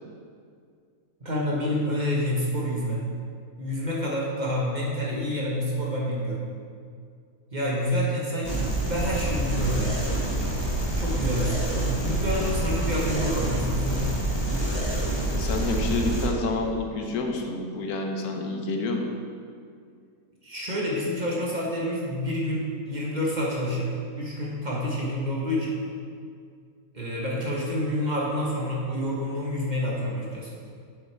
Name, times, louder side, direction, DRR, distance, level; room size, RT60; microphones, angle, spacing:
voice 1, 1.2-3.0 3.6-6.4 7.5-10.0 11.0-14.2 20.4-23.9 24.1-25.8 26.9-30.5, equal, 35° right, -5 dB, 1.2 m, -28 dB
sound 1, 8.4-16.3, right 2 dB, 20° left, 1.5 m, -27 dB
voice 2, 15.3-19.1, left 3 dB, 80° left, 3 dB, 1.3 m, -28 dB
7.0 x 5.5 x 4.4 m, 2.2 s
omnidirectional pair, 1.6 m